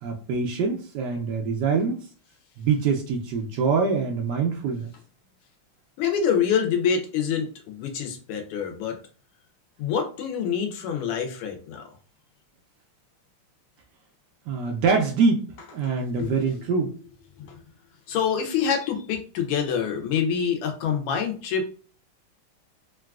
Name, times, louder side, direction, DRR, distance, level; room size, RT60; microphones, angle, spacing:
voice 1, 0.0-2.0 2.6-4.9 14.5-16.9, right 5 dB, 90° right, 1 dB, 0.9 m, -24 dB
voice 2, 6.0-9.0 9.8-11.9 16.2-16.5 17.4-17.5 18.1-21.7, left 7 dB, 85° left, 4 dB, 1.6 m, -26 dB
3.8 x 2.3 x 2.3 m, 0.40 s
omnidirectional pair, 2.4 m